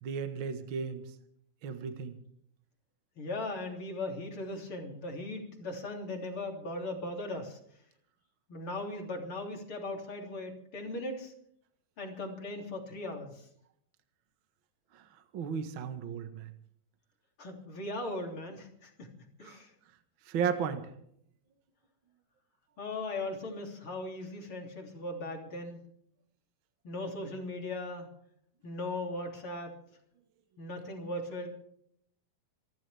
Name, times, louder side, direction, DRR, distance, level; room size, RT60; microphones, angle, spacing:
voice 1, 0.0-1.0 1.6-2.2 15.3-16.5 19.4-19.6 20.3-20.8, right 6 dB, 65° right, 7 dB, 1.2 m, -34 dB
voice 2, 3.2-7.6 8.5-11.3 12.0-13.5 17.4-19.1 19.4-19.7 22.8-25.8 26.8-28.1 28.6-29.8 30.6-31.5, left 2 dB, 35° left, 2 dB, 3.6 m, -38 dB
27.0 x 13.0 x 3.5 m, 0.69 s
omnidirectional pair, 4.5 m